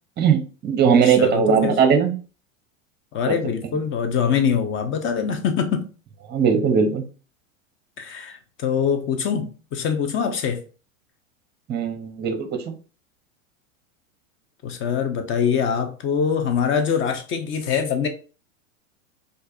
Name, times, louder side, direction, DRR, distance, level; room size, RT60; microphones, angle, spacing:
voice 1, 0.2-2.1 3.3-3.4 6.3-7.0 11.7-12.7, right 6 dB, 25° right, 0.8 m, -19 dB
voice 2, 1.0-1.7 3.1-5.9 8.0-10.6 14.6-18.1, left 7 dB, 30° left, 0.7 m, -24 dB
4.5 x 2.6 x 2.5 m
hypercardioid pair, 110°, 41 cm